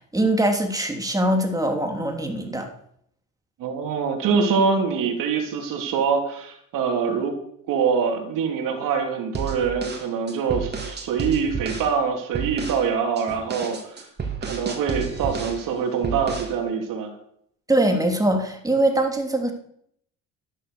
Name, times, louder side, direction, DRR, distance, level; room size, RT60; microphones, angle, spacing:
voice 1, 0.1-2.7 17.7-19.5, right 1 dB, 10° right, 4 dB, 3.0 m, -22 dB
voice 2, 3.6-7.4 7.7-14.1 14.4-17.2, right 6 dB, 80° right, 3 dB, 3.2 m, -24 dB
sound 1, 9.3-11.9 12.3-12.8 13.2-15.6 16.0-16.6, right 5 dB, 30° right, 3.3 m, -31 dB
12.5 x 11.5 x 6.8 m, 0.68 s
cardioid pair, 95°, 32 cm